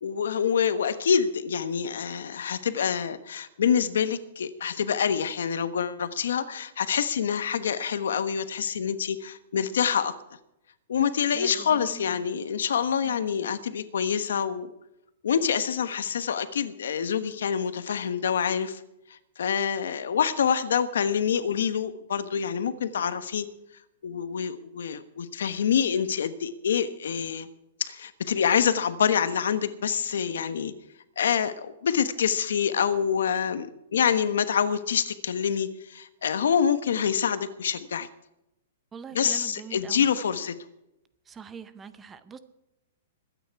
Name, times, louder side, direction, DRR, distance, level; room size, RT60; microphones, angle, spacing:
voice 1, 0.0-10.1 10.9-14.7 15.2-18.8 19.1-23.5 24.0-27.5 27.8-30.7 31.2-38.1 39.1-40.5, left 7 dB, 85° left, 12 dB, 1.1 m, -26 dB
voice 2, 11.3-12.3 13.0-13.3 38.9-40.1 41.3-42.4, right 6 dB, 15° right, 13 dB, 0.7 m, -43 dB
21.5 x 9.3 x 4.7 m, 0.88 s
hypercardioid pair, 160°, 0 cm